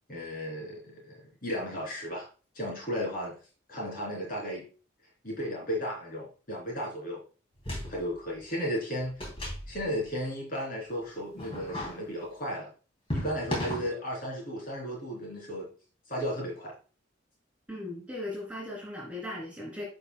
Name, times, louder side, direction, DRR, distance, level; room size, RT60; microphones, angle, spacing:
voice 1, 0.1-2.3 2.6-3.3 3.7-4.7 5.2-7.2 7.9-9.1 9.7-12.7 13.1-15.7 16.1-16.7, equal, 45° left, -2 dB, 3.4 m, -34 dB
sound 1, 7.6-8.1 8.4-8.5 9.0-10.2 11.3-12.0 13.1-13.9, left 1 dB, 30° left, 3.1 m, -35 dB
voice 2, 17.7-19.8, left 1 dB, 5° right, -3 dB, 3.0 m, -38 dB
11.0 x 5.4 x 2.3 m, 0.36 s
head